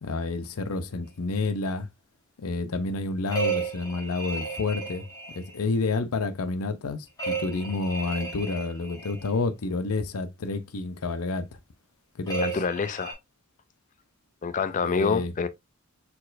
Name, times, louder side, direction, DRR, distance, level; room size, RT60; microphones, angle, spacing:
voice 1, 0.0-1.9 2.4-5.1 5.3-11.5 12.2-12.6 14.8-15.3, left 3 dB, 80° left, 0.6 m, -29 dB
sound 1, 3.3-5.6 7.2-9.3 12.3-13.1, right 5 dB, 20° left, 1.7 m, -33 dB
voice 2, 12.4-13.1 14.4-15.5, left 5 dB, 35° left, 0.3 m, -27 dB
4.4 x 4.1 x 2.5 m
head